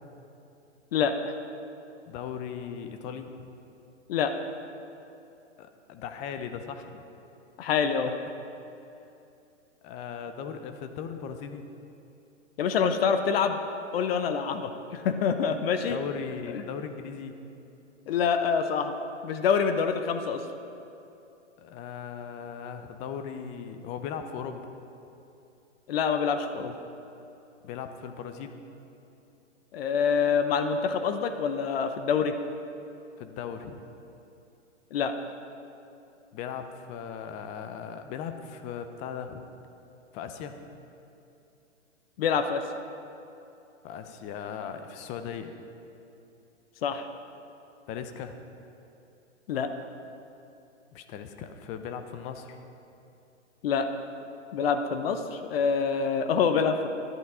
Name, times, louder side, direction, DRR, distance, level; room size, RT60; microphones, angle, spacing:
voice 1, 2.1-3.5 5.6-7.0 9.8-11.7 15.9-17.4 21.6-24.7 27.6-28.6 33.2-33.8 36.3-39.4 40.1-40.6 43.8-45.5 47.9-48.4 50.9-52.6, left 7 dB, 20° left, 8 dB, 0.5 m, -38 dB
voice 2, 7.6-8.1 12.6-13.6 13.9-16.0 16.5-16.6 18.1-18.9 19.2-20.4 25.9-26.8 29.7-32.4 34.9-35.1 42.2-42.6 46.8-47.0 49.5-49.7 53.6-53.9 54.5-56.9, left 6 dB, 50° left, 8 dB, 0.8 m, -26 dB
11.0 x 11.0 x 4.9 m, 2.8 s
hypercardioid pair, 130°, 37 cm